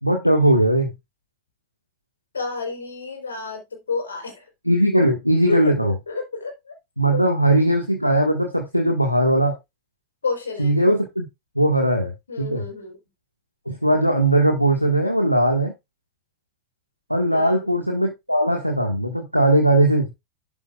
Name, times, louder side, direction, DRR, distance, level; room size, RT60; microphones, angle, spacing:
voice 1, 0.0-0.9 4.7-5.9 7.0-9.6 10.6-11.3 11.6-12.1 12.4-12.6 13.7-15.7 17.1-20.1, right 1 dB, 90° left, 1.8 m, -19 dB
voice 2, 2.3-4.5 5.5-5.6 6.1-6.7 7.1-7.2 10.2-10.8 12.3-13.0 17.3-17.7, left 4 dB, 70° left, 4.6 m, -30 dB
11.5 x 7.9 x 2.5 m
figure-of-eight pair, 90°, 0 cm